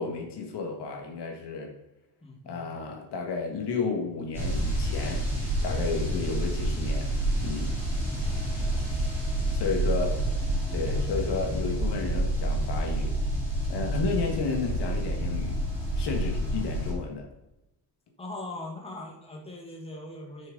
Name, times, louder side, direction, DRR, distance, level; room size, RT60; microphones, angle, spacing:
voice 1, 0.0-1.7 2.5-5.2 5.6-7.1 7.4-7.8 9.5-10.2 10.7-13.1 13.7-15.6 16.0-17.3, left 4 dB, 75° left, 2 dB, 1.8 m, -32 dB
voice 2, 2.2-2.7 8.2-9.0 18.2-20.5, left 2 dB, 15° left, -1 dB, 1.6 m, -41 dB
sound 1, 4.3-16.9, right 1 dB, 5° right, 3.4 m, -28 dB
8.9 x 6.3 x 3.9 m, 0.92 s
wide cardioid pair, 165°, 41 cm